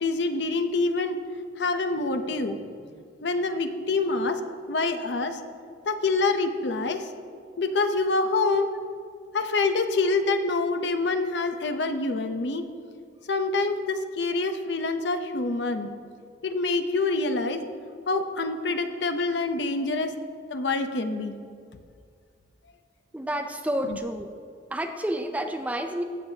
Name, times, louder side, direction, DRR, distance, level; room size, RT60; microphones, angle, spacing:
voice 1, 0.0-1.2 1.6-2.6 3.2-4.4 4.7-5.4 5.9-7.1 7.6-8.7 9.3-12.6 13.3-15.9 16.4-17.6 18.1-20.1 20.5-21.4 23.9-24.0, left 3 dB, 70° left, 7 dB, 0.7 m, -26 dB
voice 2, 23.1-24.3 24.7-26.0, right 1 dB, 10° right, 5 dB, 0.4 m, -30 dB
15.5 x 7.4 x 2.8 m, 2.2 s
head